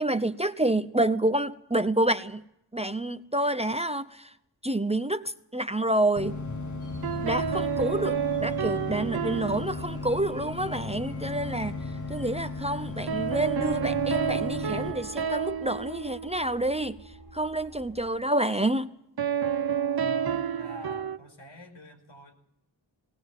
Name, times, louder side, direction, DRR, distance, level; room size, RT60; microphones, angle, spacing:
voice 1, 0.0-2.4 2.7-4.0 4.6-5.2 5.5-6.4 7.2-11.8 12.1-17.0 17.3-18.9, right 1 dB, 15° right, 9 dB, 0.7 m, -28 dB
sound 1, 6.2-14.9, left 3 dB, 40° left, 2.2 m, -36 dB
sound 2, 6.8-18.1, left 1 dB, 60° left, 6.7 m, -51 dB
sound 3, 7.0-10.4 13.1-16.9 19.2-21.2, right 7 dB, 55° right, 0.7 m, -30 dB
voice 2, 20.0-20.3 20.6-22.3, right 1 dB, 85° left, 4 dB, 5.0 m, -46 dB
19.5 x 18.5 x 7.4 m, 0.80 s
wide cardioid pair, 95°, 44 cm